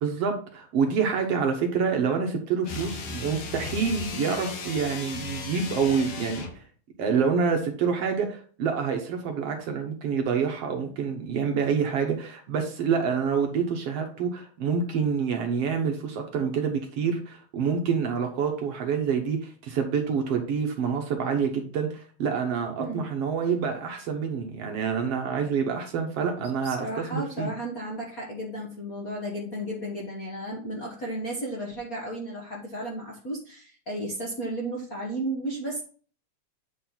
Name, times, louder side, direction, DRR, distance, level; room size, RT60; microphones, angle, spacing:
voice 1, 0.0-6.6 7.0-27.5, right 6 dB, 65° right, 3 dB, 1.8 m, -27 dB
sound 1, 2.6-6.6, left 4 dB, 70° left, 0.9 m, -36 dB
voice 2, 26.6-35.8, right 1 dB, 45° left, -2 dB, 1.2 m, -34 dB
8.6 x 4.3 x 4.0 m, 0.42 s
omnidirectional pair, 3.4 m